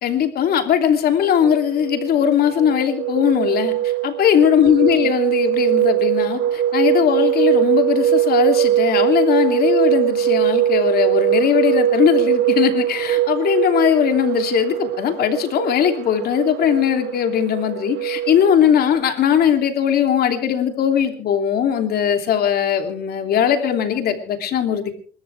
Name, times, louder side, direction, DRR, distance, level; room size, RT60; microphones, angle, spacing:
voice 1, 0.0-3.7 4.0-24.9, left 9 dB, 65° left, 6 dB, 3.0 m, -19 dB
sound 1, 1.2-19.0, right 12 dB, 75° right, 2.0 m, -21 dB
28.0 x 13.5 x 3.4 m, 0.43 s
cardioid pair, 110°, 17 cm